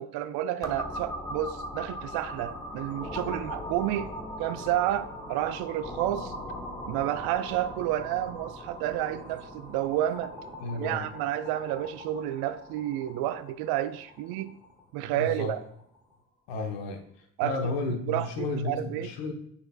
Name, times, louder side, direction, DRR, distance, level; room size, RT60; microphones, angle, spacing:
voice 1, 0.0-4.1 4.4-6.3 6.9-10.3 10.7-14.5 14.9-15.6 17.4-17.7 18.1-19.1, right 12 dB, 50° right, 13 dB, 0.5 m, -30 dB
sound 1, 0.6-14.2, equal, 5° left, 1.0 m, -40 dB
sound 2, 2.2-16.2, equal, 10° right, 1.5 m, -48 dB
voice 2, 10.6-11.1 15.1-15.5 16.5-17.0 17.4-19.3, left 3 dB, 60° left, 4 dB, 1.2 m, -32 dB
9.6 x 4.4 x 2.3 m, 0.72 s
figure-of-eight pair, 50°, 49 cm